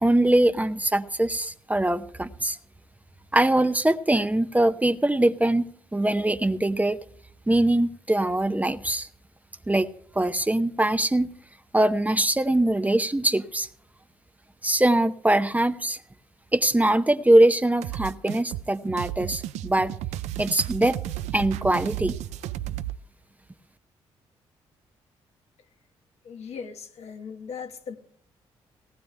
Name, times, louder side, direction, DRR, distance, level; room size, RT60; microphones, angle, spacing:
voice 1, 0.0-2.6 3.3-5.6 5.9-7.0 7.5-9.1 9.7-9.9 10.1-11.3 11.7-13.7 14.6-16.0 16.5-19.9 20.4-21.0 21.3-22.1, right 1 dB, 15° right, 0.8 m, -22 dB
sound 1, 17.8-23.0, right 13 dB, 85° right, 0.4 m, -33 dB
voice 2, 26.2-28.0, left 6 dB, 70° left, 1.4 m, -38 dB
18.5 x 18.0 x 2.2 m
supercardioid pair, 55°, 11 cm